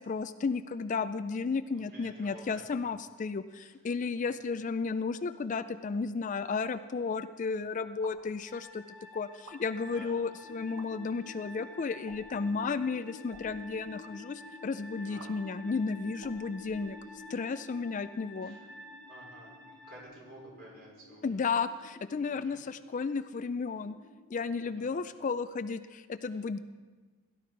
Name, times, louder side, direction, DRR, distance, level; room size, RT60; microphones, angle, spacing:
voice 1, 0.0-8.8 9.1-17.0 17.3-18.6 21.2-23.9 24.3-26.6, left 4 dB, 35° left, 12 dB, 0.3 m, -33 dB
voice 2, 1.7-2.7 3.6-3.7 4.2-4.3 9.9-10.1 15.0-15.3 16.6-16.7 18.4-18.7 19.1-21.4 22.3-22.6 24.8-24.9 26.3-26.4, right 1 dB, 45° right, -3 dB, 4.5 m, -52 dB
sound 1, 8.0-8.3 9.3-9.6 10.6-10.9 12.0-12.4 13.2-13.5 15.2-15.3 16.2-17.3, right 2 dB, 85° right, 1.6 m, -53 dB
sound 2, 8.5-20.0, left 1 dB, 20° right, 1.9 m, -51 dB
sound 3, 10.4-25.4, left 3 dB, 70° left, 0.9 m, -53 dB
17.0 x 11.5 x 4.6 m, 1.4 s
head